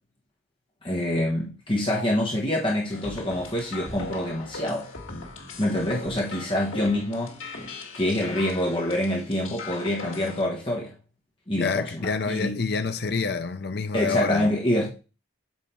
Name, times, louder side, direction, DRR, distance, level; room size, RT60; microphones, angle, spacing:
voice 1, 0.8-4.9 5.6-7.4 7.9-10.9 11.5-12.6 13.9-14.9, left 1 dB, 25° left, 1.3 m, -26 dB
sound 1, 2.9-10.4, left 3 dB, 80° left, 1.9 m, -39 dB
voice 2, 11.6-14.5, left 4 dB, 50° left, 0.6 m, -27 dB
7.4 x 4.8 x 4.3 m
head